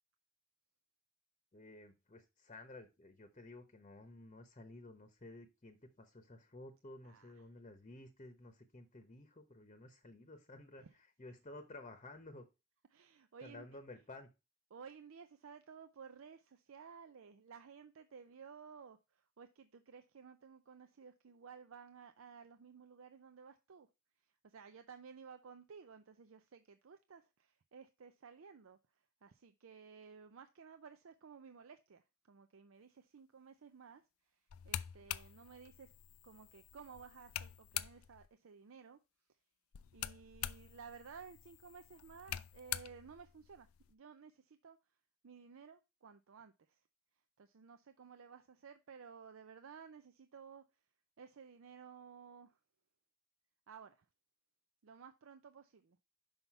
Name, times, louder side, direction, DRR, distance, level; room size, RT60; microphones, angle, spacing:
voice 1, 1.5-12.5 13.4-14.3, left 2 dB, 35° left, 0.9 m, -54 dB
voice 2, 12.9-13.7 14.7-23.9 24.4-28.8 29.2-34.0 34.3-35.9 36.2-39.0 39.9-44.8 45.2-46.8 47.4-50.6 51.2-52.6 53.7-54.0 54.8-56.0, right 6 dB, 80° right, 0.5 m, -56 dB
sound 1, 34.5-38.3 39.7-43.9, left 12 dB, 90° left, 0.4 m, -46 dB
5.7 x 5.5 x 4.5 m
head